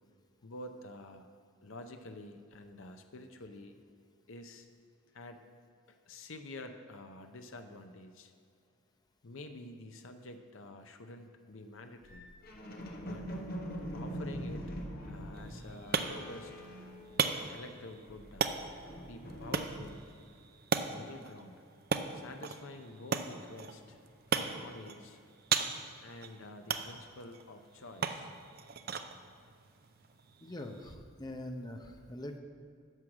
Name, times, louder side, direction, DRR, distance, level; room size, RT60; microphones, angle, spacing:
voice 1, 0.4-1.3 1.6-3.8 4.3-4.7 5.1-5.4 5.9-8.3 9.2-12.3 13.0-13.3 13.9-14.7 15.1-16.5 17.5-18.5 19.1-20.0 20.9-21.6 22.1-24.0 24.3-25.2 26.0-28.3, left 2 dB, 65° left, 6 dB, 0.7 m, -48 dB
sound 1, 12.0-17.6 17.9-20.2, equal, 45° left, 1.3 m, -43 dB
sound 2, 15.3-30.9, right 5 dB, 45° right, 0.5 m, -38 dB
voice 2, 30.4-32.4, left 1 dB, 20° left, 5 dB, 0.7 m, -43 dB
11.0 x 6.4 x 7.2 m, 2.3 s
head